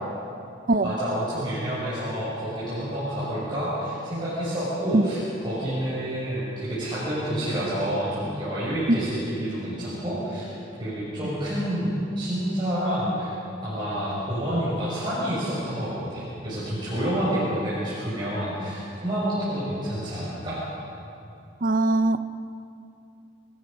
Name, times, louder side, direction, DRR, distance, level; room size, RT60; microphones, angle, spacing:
voice 1, 0.8-10.4 10.8-13.3 13.6-20.6, equal, 25° right, -10 dB, 6.4 m, -28 dB
voice 2, 21.6-22.2, right 2 dB, 40° right, 12 dB, 0.6 m, -21 dB
30.0 x 17.5 x 5.4 m, 2.6 s
head